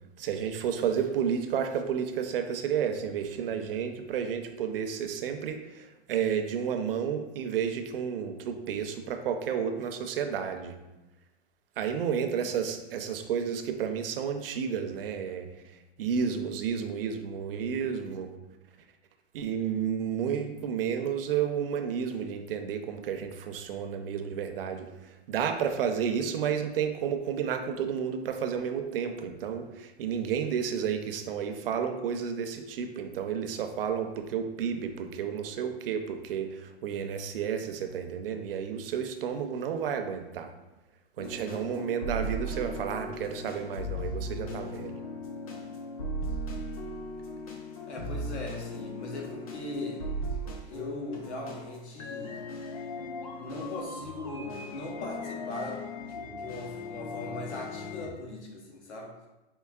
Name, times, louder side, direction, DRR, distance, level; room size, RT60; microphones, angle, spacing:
voice 1, 0.2-10.8 11.8-15.5 16.0-18.3 19.3-40.5 41.2-45.0, right 7 dB, 60° right, 6 dB, 0.5 m, -31 dB
sound 1, 41.2-58.1, equal, 35° left, 0.4 m, -38 dB
voice 2, 47.9-50.0 50.6-52.4 53.4-55.8 56.1-59.1, left 2 dB, 90° left, 0 dB, 1.1 m, -39 dB
4.5 x 3.0 x 2.3 m, 1.0 s
hypercardioid pair, 165°, 33 cm